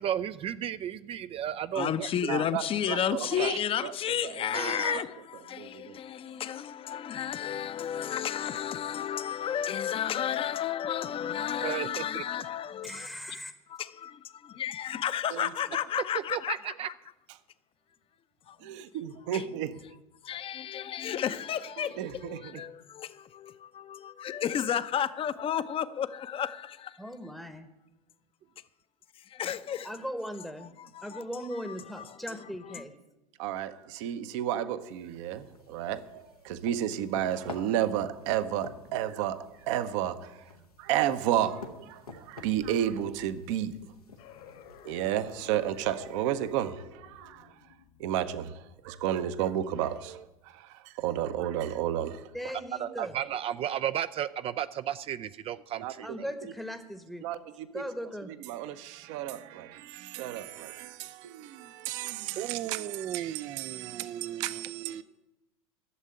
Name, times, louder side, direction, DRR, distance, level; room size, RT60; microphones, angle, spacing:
voice 1, 0.0-2.4 3.2-3.6 4.5-5.0 11.6-12.2 16.3-16.9 52.8-56.3 62.4-65.0, right 10 dB, 30° right, 0.4 m, -34 dB
voice 2, 1.7-13.1 13.7-16.9 18.5-18.7 19.3-19.4 20.2-27.0 29.2-30.0 30.6-32.2 32.6-32.8, left 9 dB, 30° left, 0.7 m, -33 dB
voice 3, 2.3-3.5 3.8-3.9 4.2-5.0 5.5-6.0 15.3-15.5 18.6-19.8 21.8-22.6 33.4-43.9 44.8-52.5 55.8-56.5 57.2-57.8 58.2-65.0, right 11 dB, 55° right, 0.9 m, -33 dB
voice 4, 12.8-13.5 27.0-27.7 29.8-30.7 31.0-32.9 52.3-53.2 56.0-57.2 57.7-58.3, equal, ahead, 1.0 m, -38 dB
sound 1, 34.9-46.7, left 4 dB, 85° left, 1.2 m, -50 dB
sound 2, 44.2-49.5, left 8 dB, 55° left, 1.6 m, -53 dB
12.5 x 7.3 x 8.8 m
figure-of-eight pair, 80°, 19 cm